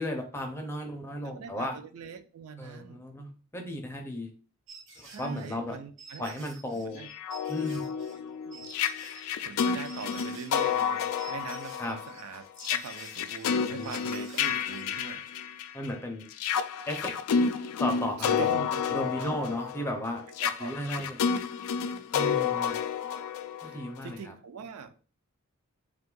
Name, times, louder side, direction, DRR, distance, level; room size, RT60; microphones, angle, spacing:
voice 1, 0.0-1.7 2.6-4.3 5.0-5.8 6.2-7.0 7.5-7.9 11.8-12.0 13.7-13.9 15.7-16.2 16.9-17.1 17.8-18.5 18.9-20.2 20.6-21.2 22.1-22.8 23.6-24.3, left 1 dB, 10° left, 3 dB, 0.4 m, -34 dB
voice 2, 1.2-3.0 5.0-6.5 6.8-7.1 8.4-9.1 9.4-15.2 18.2-19.6 20.4-21.1 21.9-22.0 23.6-24.9, right 6 dB, 80° right, 9 dB, 0.4 m, -43 dB
sound 1, 4.7-15.1, right 3 dB, 60° right, 0.9 m, -50 dB
sound 2, 7.0-15.9 16.3-24.1, left 7 dB, 85° left, 0.3 m, -30 dB
2.6 x 2.4 x 3.7 m, 0.37 s
head